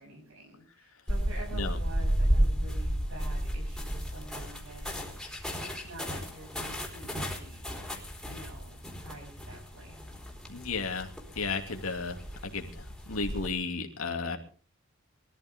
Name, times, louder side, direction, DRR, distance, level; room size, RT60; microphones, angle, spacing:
voice 1, 0.0-7.7 8.2-10.1, right 1 dB, 70° right, -4 dB, 7.6 m, -48 dB
sound 1, 1.1-13.5, equal, ahead, 4.1 m, -33 dB
voice 2, 10.5-14.4, left 4 dB, 70° left, 4 dB, 2.7 m, -34 dB
22.5 x 14.5 x 3.7 m, 0.38 s
head